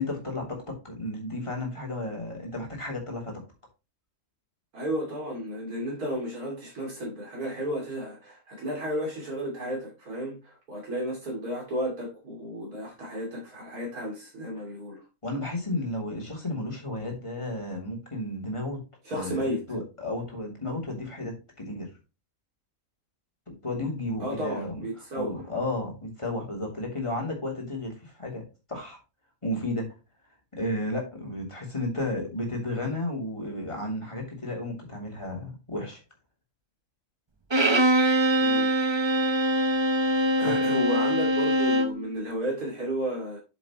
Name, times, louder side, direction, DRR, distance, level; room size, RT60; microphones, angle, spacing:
voice 1, 0.0-3.4 15.2-18.8 19.1-21.9 23.6-24.8 25.1-29.0 29.4-29.9 30.5-36.0 40.4-40.6, left 1 dB, 20° left, 3.1 m, -33 dB
voice 2, 4.7-15.0 19.0-19.6 24.2-25.4 38.4-38.7 40.4-43.4, equal, 75° right, 3.2 m, -33 dB
Bowed string instrument, 37.5-42.0, equal, 25° right, 0.7 m, -23 dB
7.9 x 7.1 x 3.1 m
omnidirectional pair, 1.6 m